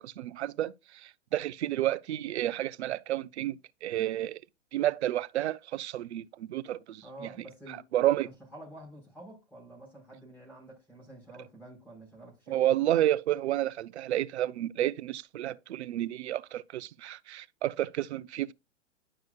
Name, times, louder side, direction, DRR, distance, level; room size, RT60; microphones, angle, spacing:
voice 1, 0.0-3.6 3.8-4.4 4.7-7.3 7.9-8.3 12.5-18.5, right 13 dB, 65° right, 0.6 m, -30 dB
voice 2, 7.0-7.9 8.1-12.6, right 1 dB, 5° left, 5.1 m, -49 dB
11.0 x 6.1 x 2.3 m
hypercardioid pair, 140°, 36 cm